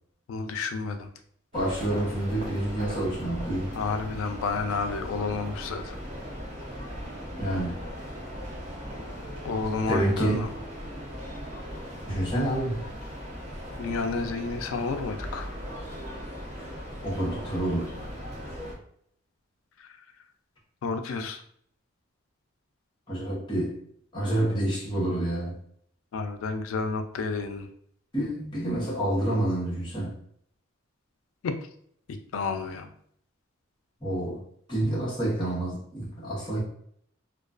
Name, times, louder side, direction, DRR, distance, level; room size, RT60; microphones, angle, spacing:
voice 1, 0.3-1.1 3.7-6.0 9.4-10.5 13.8-15.5 19.8-20.0 20.8-21.4 26.1-27.7 31.4-31.5 32.3-32.9, left 4 dB, 85° left, 7 dB, 0.3 m, -30 dB
voice 2, 1.5-3.7 7.4-7.8 9.9-10.4 12.0-12.8 17.0-18.0 23.1-23.8 24.1-25.6 28.1-30.2 34.0-34.4 34.7-36.6, right 1 dB, 25° left, -6 dB, 0.8 m, -28 dB
sound 1, 1.5-18.7, equal, 35° right, 0.6 m, -38 dB
2.3 x 2.3 x 2.3 m, 0.65 s
head